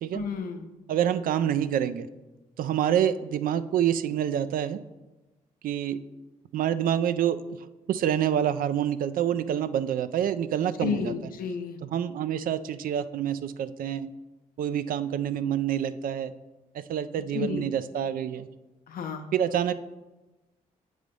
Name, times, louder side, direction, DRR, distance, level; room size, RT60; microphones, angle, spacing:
voice 1, 0.1-0.7 10.8-11.8 17.3-17.6 18.9-19.3, left 6 dB, 75° left, 6 dB, 0.7 m, -32 dB
voice 2, 0.9-2.1 2.6-4.8 5.6-6.0 6.5-7.4 7.9-11.1 11.8-14.1 14.6-16.3 16.7-18.5 19.3-19.7, right 10 dB, 70° right, 13 dB, 0.4 m, -27 dB
7.5 x 3.3 x 5.3 m, 1.1 s
supercardioid pair, 50°, 15 cm